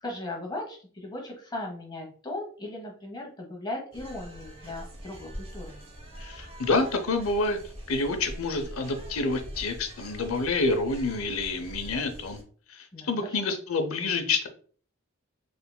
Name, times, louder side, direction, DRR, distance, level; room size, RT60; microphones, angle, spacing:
voice 1, 0.0-5.8 12.9-13.4, left 1 dB, 20° left, 1 dB, 1.0 m, -37 dB
sound 1, 3.9-12.4, equal, 30° right, 0.7 m, -43 dB
voice 2, 6.2-7.6 7.9-12.4 12.7-14.5, left 3 dB, 80° left, 6 dB, 0.7 m, -28 dB
3.7 x 3.3 x 2.2 m, 0.43 s
head